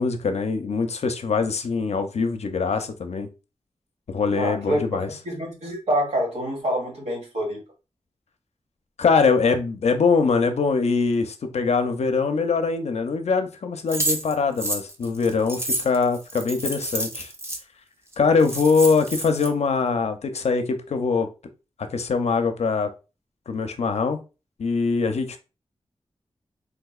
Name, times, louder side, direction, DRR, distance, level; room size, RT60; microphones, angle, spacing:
voice 1, 0.0-3.3 4.1-5.1 9.0-17.3 18.2-21.3 21.9-22.9 23.5-24.2 24.6-25.4, left 4 dB, 80° left, 0.5 m, -23 dB
voice 2, 4.4-7.6, equal, 85° right, 1.5 m, -27 dB
sound 1, 13.9-17.6 18.1-18.2 18.4-19.5, right 1 dB, 25° right, 0.6 m, -29 dB
3.6 x 2.7 x 2.3 m
wide cardioid pair, 105°, 11 cm